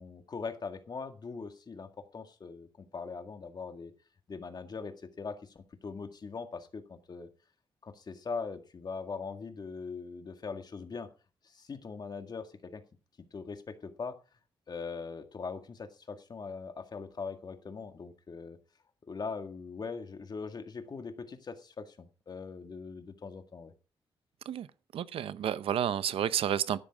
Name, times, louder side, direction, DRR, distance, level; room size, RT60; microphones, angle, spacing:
voice 1, 0.0-3.9 4.3-7.3 7.8-11.1 11.4-12.8 13.3-14.2 14.7-18.6 19.1-23.7, left 5 dB, 45° left, 1.9 m, -41 dB
voice 2, 24.9-26.8, right 10 dB, 85° right, 0.7 m, -30 dB
12.5 x 10.5 x 3.6 m
cardioid pair, 80°, 9 cm